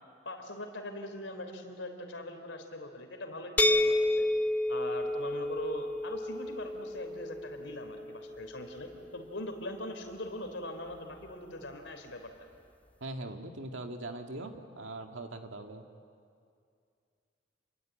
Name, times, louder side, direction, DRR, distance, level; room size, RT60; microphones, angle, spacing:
voice 1, 0.3-4.3 4.7-12.3, left 1 dB, 75° left, 5 dB, 3.6 m, -41 dB
sound 1, 3.6-9.3, left 1 dB, 10° left, 0.7 m, -31 dB
voice 2, 13.0-15.8, right 2 dB, 90° right, 4 dB, 2.1 m, -41 dB
29.0 x 22.0 x 9.1 m, 2.4 s
head